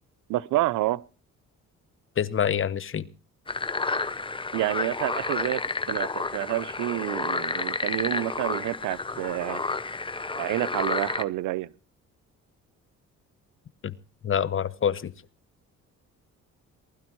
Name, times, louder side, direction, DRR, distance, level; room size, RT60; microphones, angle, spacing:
voice 1, 0.3-1.0 4.5-5.6 5.9-9.7 10.3-11.7, right 16 dB, 90° right, 0.7 m, -28 dB
voice 2, 2.2-3.0 13.8-13.9 14.2-15.1, left 8 dB, 45° left, 1.0 m, -26 dB
sound 1, 3.5-11.2, left 3 dB, 15° left, 1.0 m, -30 dB
20.0 x 12.5 x 4.6 m
cardioid pair, 90°, 30 cm